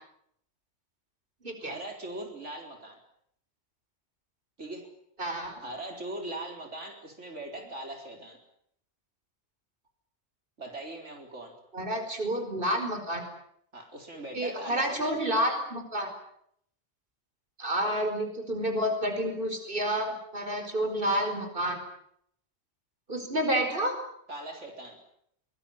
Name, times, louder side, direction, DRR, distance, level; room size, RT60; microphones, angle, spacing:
voice 1, 1.6-3.0 4.6-4.9 5.6-8.4 10.6-11.5 13.7-15.2 24.3-25.0, right 1 dB, 85° right, 3 dB, 4.5 m, -40 dB
voice 2, 5.2-5.6 11.7-13.2 14.3-16.1 17.6-21.8 23.1-23.9, equal, 50° right, 6 dB, 5.0 m, -29 dB
24.0 x 21.0 x 9.0 m, 0.71 s
omnidirectional pair, 1.2 m